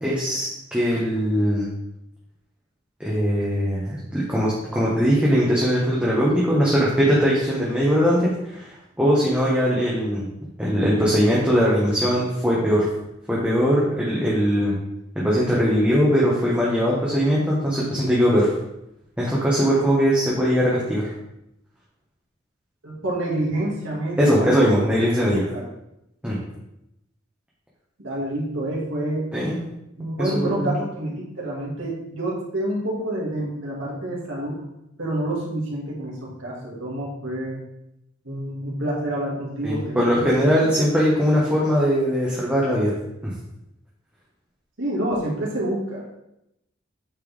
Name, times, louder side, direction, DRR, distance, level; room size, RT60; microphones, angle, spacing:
voice 1, 0.0-1.7 3.0-10.3 10.6-12.9 13.3-14.7 15.2-18.5 19.2-21.1 24.2-25.5 26.2-26.4 29.3-29.6 30.2-30.8 39.6-42.9 43.2-43.3, equal, 5° right, -7 dB, 1.3 m, -20 dB
voice 2, 22.8-24.5 24.9-25.0 25.2-25.7 28.0-29.3 30.0-34.6 35.0-37.6 38.2-40.3 44.8-46.0, right 1 dB, 70° right, -4 dB, 2.4 m, -28 dB
8.5 x 4.5 x 3.5 m, 0.85 s
head